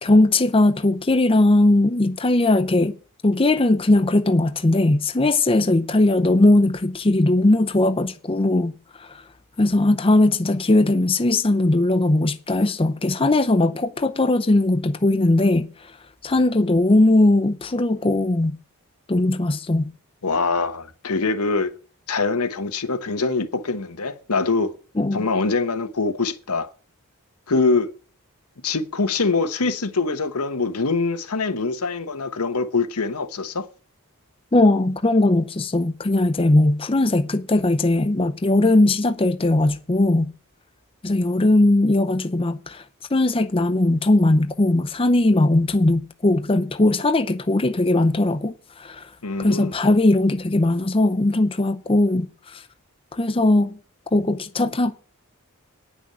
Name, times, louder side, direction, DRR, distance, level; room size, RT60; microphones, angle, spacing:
voice 1, 0.0-2.9 3.2-8.7 9.6-15.7 16.2-18.6 19.1-19.9 25.0-25.3 34.5-40.3 41.0-42.8 43.1-48.5 48.8-49.0 49.4-52.6 53.1-53.8 54.1-54.9, left 2 dB, 25° left, 0.6 m, -19 dB
voice 2, 20.2-21.7 22.1-24.7 25.1-26.7 27.5-27.9 28.6-33.7 49.2-49.7, left 3 dB, 90° left, 1.2 m, -23 dB
9.9 x 6.2 x 7.9 m
head